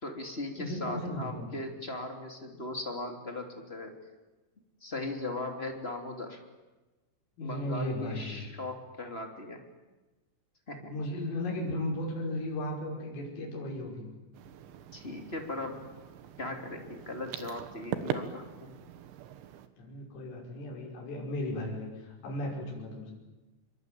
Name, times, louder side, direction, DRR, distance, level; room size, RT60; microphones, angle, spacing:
voice 1, 0.0-3.9 4.8-6.4 7.4-9.6 10.7-10.9 14.9-15.8 16.4-18.7, left 2 dB, 15° left, 3 dB, 2.2 m, -38 dB
voice 2, 0.6-1.5 7.4-8.5 10.9-14.1 19.8-23.1, left 1 dB, 75° left, -1 dB, 8.2 m, -35 dB
sound 1, 14.3-19.7, right 9 dB, 70° right, 3.6 m, -41 dB
26.0 x 23.5 x 9.3 m, 1.1 s
omnidirectional pair, 5.8 m